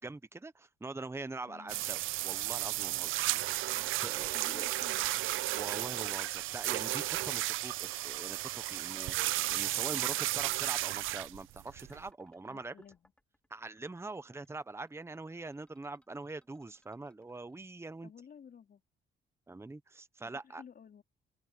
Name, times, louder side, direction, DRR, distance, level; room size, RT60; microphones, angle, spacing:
voice 1, 0.0-3.2 4.0-4.7 5.5-12.7 13.5-18.1 19.5-20.6, right 3 dB, 15° right, 1.0 m, -44 dB
sound 1, 1.4-17.6, left 1 dB, 5° left, 4.3 m, -63 dB
voice 2, 1.5-1.8 3.7-5.2 9.9-10.3 12.4-13.1 18.0-18.8 20.2-21.0, left 7 dB, 50° left, 4.2 m, -55 dB
sound 2, 1.7-12.1, right 17 dB, 90° right, 0.6 m, -34 dB
open air
cardioid pair, 90°, 20 cm